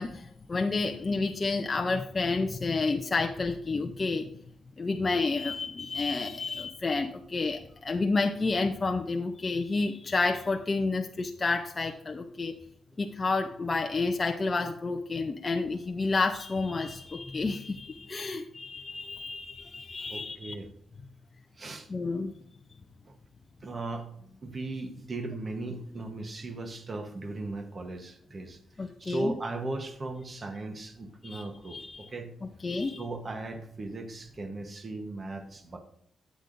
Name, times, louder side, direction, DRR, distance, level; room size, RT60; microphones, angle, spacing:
voice 1, 0.0-4.3 4.8-12.5 13.0-20.5 21.9-22.3 28.8-29.3 31.2-32.0 32.6-33.0, left 3 dB, 25° left, 5 dB, 0.5 m, -30 dB
voice 2, 20.1-20.7 21.5-21.9 23.0-23.2 23.6-24.1 24.4-32.3 33.0-35.8, right 2 dB, 30° right, 5 dB, 1.0 m, -37 dB
12.0 x 8.2 x 2.6 m, 0.70 s
wide cardioid pair, 160°, 0 cm